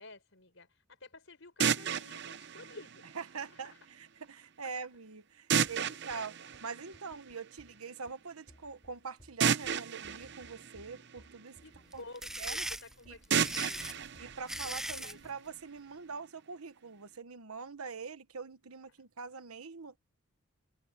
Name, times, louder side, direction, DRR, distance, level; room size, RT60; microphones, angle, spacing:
voice 1, 0.0-3.1 3.5-3.8 5.6-6.2 6.7-6.9 11.6-14.0 14.6-15.2, left 2 dB, 60° left, 5.6 m, -52 dB
sound 1, 1.6-3.6 5.5-7.5 9.4-11.6 13.3-15.3, right 7 dB, 55° right, 0.8 m, -33 dB
voice 2, 3.1-6.3 6.6-11.6 11.9-12.0 12.4-12.6 13.1-13.2 14.2-20.0, right 5 dB, 90° right, 1.2 m, -44 dB
sound 2, 5.6-15.6, equal, 30° left, 4.6 m, -61 dB
sound 3, 11.9-15.2, right 1 dB, ahead, 0.4 m, -39 dB
head